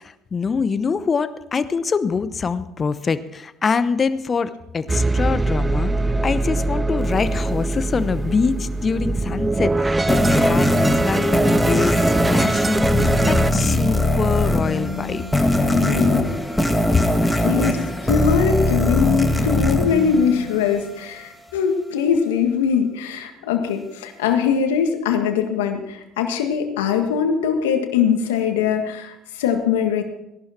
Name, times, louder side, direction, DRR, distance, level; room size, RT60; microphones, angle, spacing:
voice 1, 0.0-5.9 6.2-15.2 16.9-17.3, left 5 dB, 35° left, 13 dB, 0.9 m, -24 dB
sound 1, 4.9-13.5, right 2 dB, 20° right, 0.5 m, -22 dB
sound 2, 10.1-20.9, left 1 dB, 10° left, 2.2 m, -20 dB
voice 2, 15.7-16.4 17.4-30.0, left 7 dB, 90° left, 5 dB, 1.6 m, -21 dB
17.5 x 11.5 x 4.4 m, 0.86 s
hypercardioid pair, 65°, 0 cm